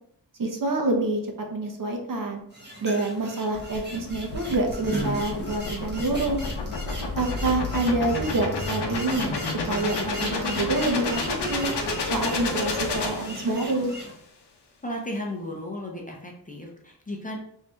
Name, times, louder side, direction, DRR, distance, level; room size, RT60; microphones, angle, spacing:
voice 1, 0.4-1.2 1.5-2.4 2.8-6.4 7.2-9.4 9.7-11.7 12.1-13.9, right 2 dB, 50° right, 2 dB, 0.7 m, -27 dB
sound 1, 2.5-14.1, right 1 dB, 25° right, 1.0 m, -37 dB
sound 2, 3.5-13.9, left 3 dB, 75° left, 0.7 m, -30 dB
voice 2, 14.8-17.4, left 1 dB, 20° left, -1 dB, 0.6 m, -34 dB
3.2 x 2.7 x 3.4 m, 0.70 s
wide cardioid pair, 125°, 41 cm